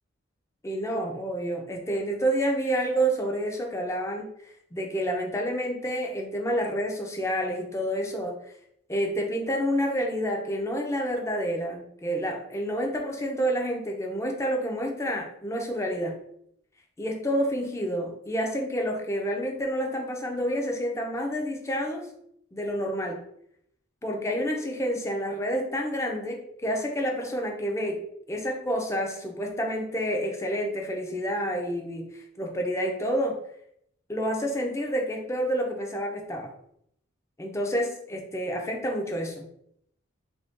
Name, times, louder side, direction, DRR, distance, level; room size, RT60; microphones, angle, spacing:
voice 1, 0.6-4.3 4.7-8.3 8.9-16.2 17.0-22.1 22.5-23.2 24.0-28.0 28.3-33.4 34.1-36.5 37.4-39.5, equal, 15° left, 2 dB, 0.4 m, -29 dB
3.2 x 2.6 x 3.5 m, 0.73 s
head